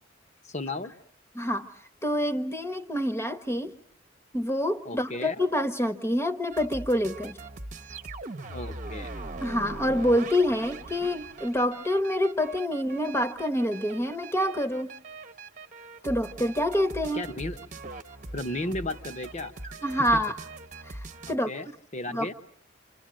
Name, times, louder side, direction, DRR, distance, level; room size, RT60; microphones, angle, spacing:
voice 1, 0.4-0.9 4.8-5.3 8.5-9.2 17.1-17.6 18.3-19.5 20.0-20.2 21.3-22.3, left 2 dB, 35° left, 1.2 m, -34 dB
voice 2, 1.3-1.7 2.0-3.7 4.3-7.4 9.4-14.9 16.0-17.2 19.8-20.3 20.8-21.5 22.1-22.3, equal, 15° left, 1.2 m, -27 dB
sound 1, 6.5-21.4, right 3 dB, 40° right, 1.1 m, -41 dB
28.0 x 27.5 x 7.7 m
head